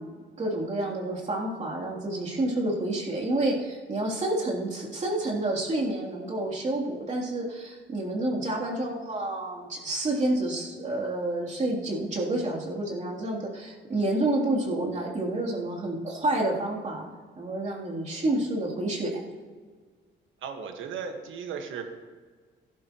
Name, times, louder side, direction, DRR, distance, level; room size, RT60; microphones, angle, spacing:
voice 1, 0.0-17.0 17.3-19.2, right 1 dB, 35° right, -4 dB, 3.1 m, -29 dB
voice 2, 20.4-21.8, right 6 dB, 80° right, 5 dB, 1.5 m, -36 dB
15.5 x 11.5 x 3.0 m, 1.5 s
cardioid pair, 90°, 20 cm